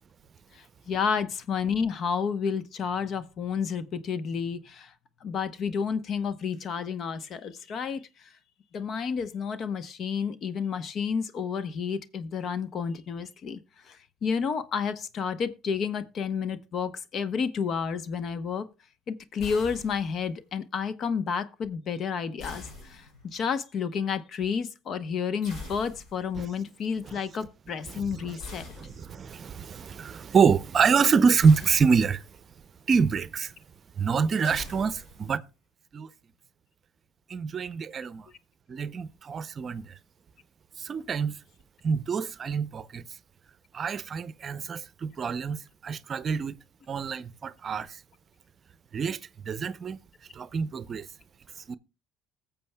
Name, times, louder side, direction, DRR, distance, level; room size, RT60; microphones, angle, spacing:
voice 1, 0.5-4.9 5.2-8.1 8.7-13.6 13.9-18.7 19.1-28.6, left 6 dB, 55° left, 0.8 m, -31 dB
sound 1, 19.4-20.3 22.4-23.5 25.4-26.4 28.4-29.4 31.4-32.4 34.4-35.4, left 2 dB, 70° left, 5.2 m, -44 dB
voice 2, 27.8-28.4 28.8-32.2 32.9-33.5 34.0-35.4 35.9-36.1 37.3-38.3 38.7-40.0 40.8-41.4 41.8-43.0 43.7-46.6 46.9-48.0 48.9-49.2 49.5-50.0 50.3-51.1 51.6-51.7, right 5 dB, 45° right, 0.6 m, -26 dB
20.5 x 6.9 x 2.3 m
supercardioid pair, 70°, 0 cm